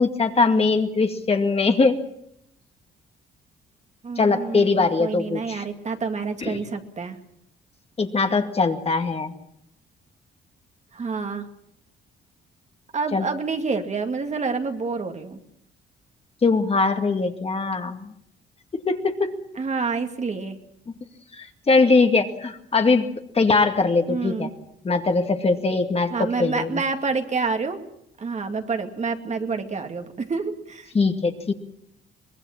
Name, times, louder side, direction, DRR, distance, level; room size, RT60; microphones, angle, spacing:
voice 1, 0.0-2.0 4.2-5.6 6.4-6.6 8.0-9.3 13.1-13.3 16.4-18.1 18.9-19.3 21.3-24.5 24.8-26.8 30.9-31.5, left 3 dB, 30° left, 5 dB, 2.2 m, -21 dB
voice 2, 4.0-7.2 10.9-11.5 12.9-15.4 19.6-20.6 24.1-24.5 26.1-27.8 28.2-30.9, right 4 dB, 35° right, 5 dB, 2.3 m, -28 dB
24.0 x 20.0 x 7.3 m, 0.74 s
cardioid pair, 95°, 19 cm